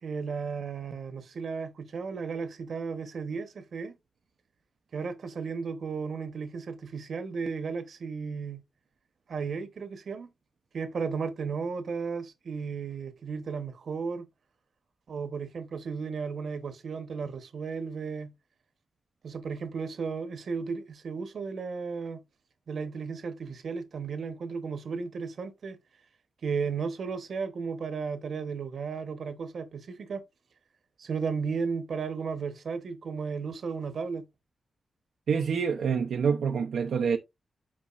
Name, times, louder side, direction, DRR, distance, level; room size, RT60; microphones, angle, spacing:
voice 1, 0.0-3.9 4.9-8.6 9.3-10.3 10.7-14.3 15.1-18.3 19.2-22.2 22.7-25.8 26.4-30.2 31.0-34.3, right 5 dB, 65° right, 1.1 m, -34 dB
voice 2, 35.3-37.2, right 6 dB, 85° right, 0.7 m, -26 dB
8.7 x 5.2 x 2.5 m
wide cardioid pair, 115°, 0 cm